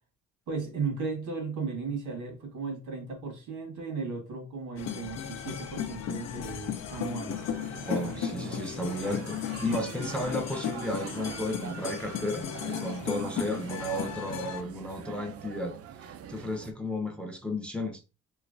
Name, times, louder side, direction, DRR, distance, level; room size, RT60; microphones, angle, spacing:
voice 1, 0.5-7.4 9.7-9.8, right 4 dB, 85° right, 1.5 m, -35 dB
sound 1, 4.8-14.6, left 8 dB, 60° left, 0.5 m, -35 dB
sound 2, 7.3-16.7, right 8 dB, 50° right, 0.4 m, -43 dB
voice 2, 7.9-15.8 16.3-18.0, left 1 dB, 5° left, 0.5 m, -33 dB
3.1 x 2.9 x 2.6 m
cardioid pair, 90°, 30 cm